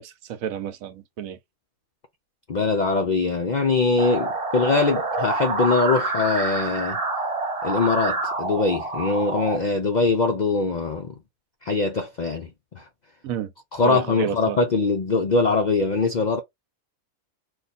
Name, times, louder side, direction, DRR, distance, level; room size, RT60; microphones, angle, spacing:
voice 1, 0.0-1.4 13.2-13.5 13.8-14.6, right 9 dB, 85° right, 1.1 m, -30 dB
voice 2, 2.5-7.0 7.6-11.1 11.6-12.8 13.7-16.4, left 3 dB, 70° left, 0.4 m, -22 dB
sound 1, 4.0-9.6, right 3 dB, 30° right, 0.7 m, -27 dB
2.5 x 2.5 x 4.1 m
omnidirectional pair, 1.4 m